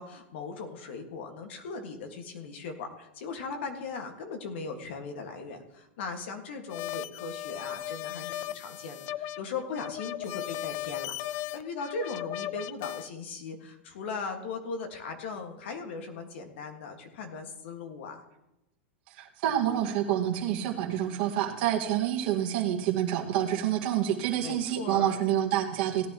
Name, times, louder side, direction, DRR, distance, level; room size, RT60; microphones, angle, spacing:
voice 1, 0.0-18.2 24.4-25.2, left 4 dB, 70° left, 4 dB, 1.8 m, -38 dB
sound 1, 6.7-13.1, left 13 dB, 40° left, 0.3 m, -37 dB
voice 2, 19.1-26.1, right 11 dB, 55° right, 0 dB, 1.8 m, -28 dB
17.5 x 10.5 x 3.0 m, 0.91 s
supercardioid pair, 140°, 6 cm